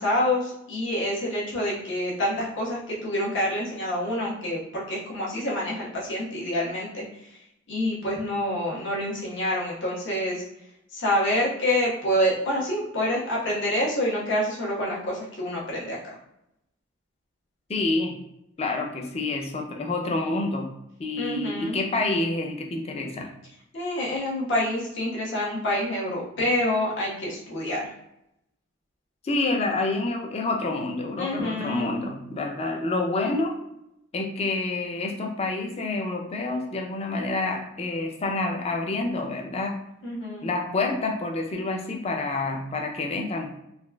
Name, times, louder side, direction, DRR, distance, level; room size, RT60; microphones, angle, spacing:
voice 1, 0.0-7.0 7.7-10.4 10.9-16.0 21.2-21.8 23.7-27.9 31.2-31.9 40.0-40.5, left 1 dB, 60° left, -6 dB, 1.2 m, -27 dB
voice 2, 17.7-18.1 18.6-20.7 21.0-23.3 29.2-33.6 34.1-39.8 40.4-43.5, left 2 dB, 30° left, 2 dB, 0.4 m, -28 dB
4.1 x 2.4 x 2.2 m, 0.83 s
head